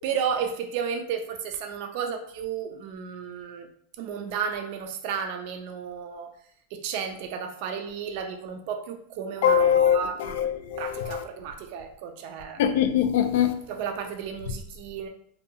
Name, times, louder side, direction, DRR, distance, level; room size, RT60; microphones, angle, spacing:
voice 1, 0.0-3.7 4.0-6.3 6.7-10.4 10.8-12.6 13.7-15.1, right 7 dB, 55° right, 0.3 m, -33 dB
voice 2, 9.4-11.2 12.6-13.5, left 9 dB, 65° left, 0.3 m, -22 dB
2.6 x 2.2 x 2.7 m
supercardioid pair, 140°, 0 cm